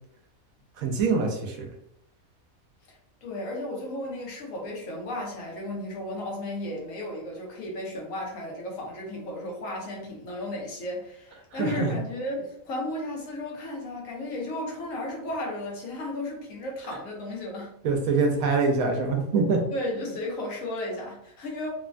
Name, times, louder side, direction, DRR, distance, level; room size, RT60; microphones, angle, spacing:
voice 1, 0.8-1.7 11.5-12.0 17.8-19.6, right 4 dB, 80° right, 3 dB, 1.0 m, -24 dB
voice 2, 3.2-17.7 19.7-21.7, left 1 dB, 70° left, -1 dB, 1.1 m, -34 dB
3.1 x 2.1 x 2.4 m, 0.75 s
omnidirectional pair, 1.5 m